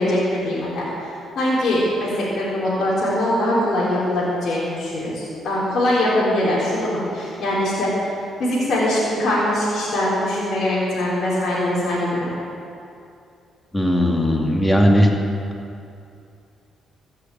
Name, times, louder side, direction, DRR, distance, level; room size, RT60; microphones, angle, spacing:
voice 1, 0.0-7.9 8.4-12.3, left 1 dB, 65° left, -8 dB, 4.0 m, -22 dB
voice 2, 13.7-15.1, equal, 15° left, 0 dB, 2.6 m, -17 dB
14.5 x 6.9 x 9.1 m, 2.5 s
supercardioid pair, 55°, 0 cm